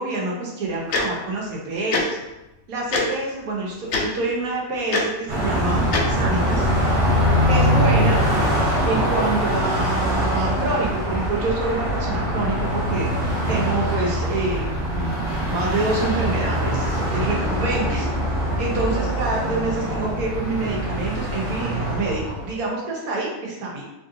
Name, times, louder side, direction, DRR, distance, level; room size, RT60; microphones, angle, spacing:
voice 1, 0.0-2.1 2.7-6.7 7.5-8.2 8.8-18.1 18.6-23.8, right 2 dB, 80° right, -3 dB, 1.4 m, -27 dB
Tick-tock, 0.9-1.0 1.9-2.0 2.9-3.0 3.9-4.0 4.9-5.0 5.9-6.0, left 4 dB, 60° left, 0.8 m, -21 dB
Car passing by, 5.3-22.5, equal, 45° right, 0.9 m, -23 dB
3.7 x 3.4 x 2.6 m, 0.97 s
omnidirectional pair, 1.5 m